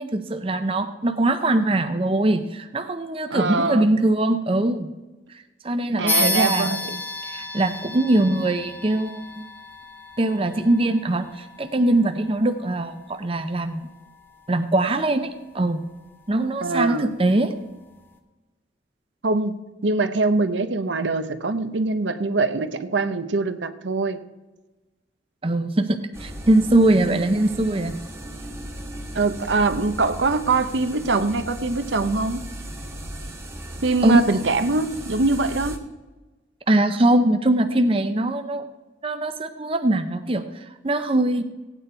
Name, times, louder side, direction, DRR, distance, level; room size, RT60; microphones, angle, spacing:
voice 1, 0.0-4.9 5.6-9.5 10.2-13.9 14.5-15.8 16.3-17.5 25.4-27.9 34.0-34.2 36.7-38.6 39.0-41.4, right 1 dB, 30° right, 8 dB, 0.6 m, -22 dB
voice 2, 3.3-3.9 6.0-7.0 16.6-17.1 19.2-24.2 27.1-27.2 29.1-32.4 33.8-35.8, right 3 dB, 80° right, 10 dB, 0.8 m, -23 dB
sound 1, 6.1-16.0, left 2 dB, 10° left, 0.9 m, -33 dB
sound 2, 26.1-35.8, right 1 dB, 15° right, 1.1 m, -37 dB
16.5 x 9.1 x 4.5 m, 1.1 s
head